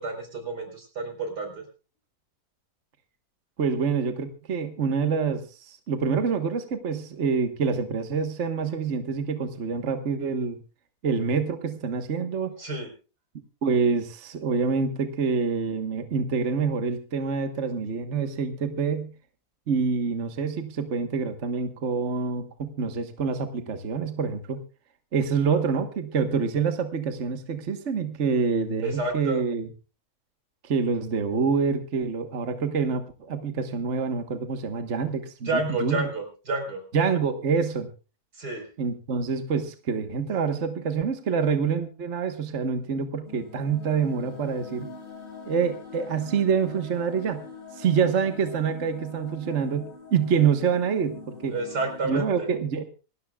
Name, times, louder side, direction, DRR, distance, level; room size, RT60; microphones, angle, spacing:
voice 1, 0.0-1.6 12.6-12.9 28.8-29.4 35.4-36.8 38.3-38.7 51.5-52.5, right 2 dB, 90° right, 4 dB, 5.0 m, -30 dB
voice 2, 3.6-10.6 11.0-12.5 13.6-19.1 19.7-24.6 25.1-29.7 30.6-36.1 36.9-37.9 38.8-44.9 45.5-47.4 47.8-51.5 52.0-52.8, right 5 dB, 50° right, 7 dB, 1.5 m, -26 dB
sound 1, 43.2-52.1, left 3 dB, 35° left, 6.1 m, -43 dB
26.5 x 13.0 x 2.3 m, 0.34 s
omnidirectional pair, 1.7 m